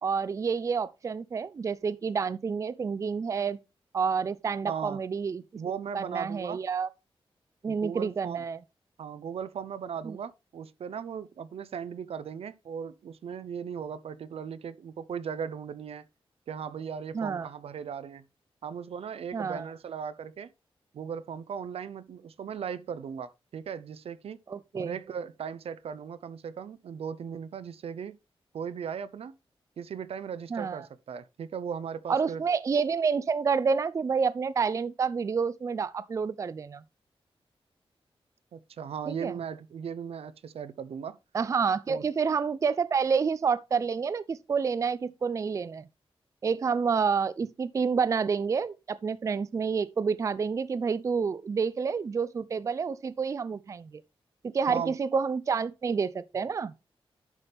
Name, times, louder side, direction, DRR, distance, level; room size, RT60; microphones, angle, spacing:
voice 1, 0.0-3.6 3.9-5.4 5.9-6.9 7.6-8.6 10.0-10.2 17.1-17.5 19.3-19.7 24.5-25.0 30.5-30.9 32.1-36.8 39.1-39.4 41.3-45.9 46.4-54.0 54.4-56.7, right 5 dB, 35° right, 0.3 m, -29 dB
voice 2, 4.7-5.0 5.6-6.6 7.7-8.4 9.0-16.0 16.5-18.2 18.6-20.5 20.9-24.4 24.8-28.2 28.5-29.3 29.8-32.4 38.5-41.2 41.9-42.0 54.7-55.0, right 7 dB, 80° right, 0.6 m, -37 dB
11.0 x 5.8 x 3.4 m
wide cardioid pair, 165°, 10 cm